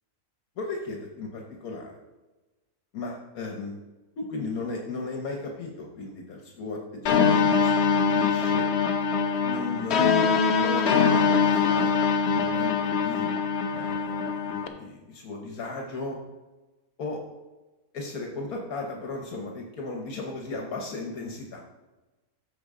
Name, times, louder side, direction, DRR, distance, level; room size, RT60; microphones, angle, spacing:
voice 1, 0.6-1.9 2.9-3.8 4.2-8.6 9.4-11.9 12.3-13.3 13.7-16.2 17.0-17.2 17.9-21.6, left 3 dB, 75° left, 1 dB, 1.5 m, -36 dB
sound 1, 7.1-14.7, left 5 dB, 55° left, 0.8 m, -23 dB
13.5 x 4.6 x 3.7 m, 1.1 s
omnidirectional pair, 1.5 m